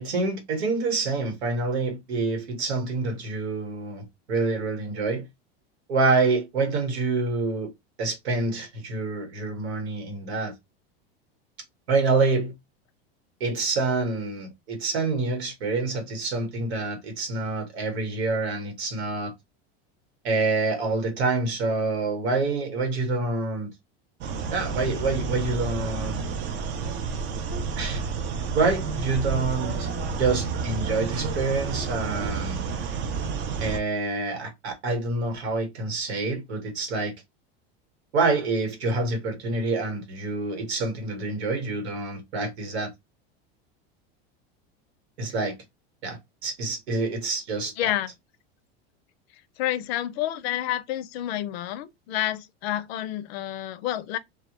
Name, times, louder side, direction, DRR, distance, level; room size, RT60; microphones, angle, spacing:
voice 1, 0.0-5.2 5.9-7.7 8.0-10.5 11.9-12.5 13.4-19.3 20.2-23.7 24.5-26.2 27.8-28.0 28.5-29.9 30.2-32.6 33.6-37.1 38.1-42.9 45.2-45.5 46.0-47.7, right 3 dB, 90° right, 1.2 m, -27 dB
sound 1, 24.2-33.8, right 5 dB, 35° right, 0.5 m, -30 dB
voice 2, 47.8-48.1 49.6-54.2, left 12 dB, 75° left, 0.5 m, -29 dB
2.3 x 2.1 x 2.9 m
supercardioid pair, 125°, 31 cm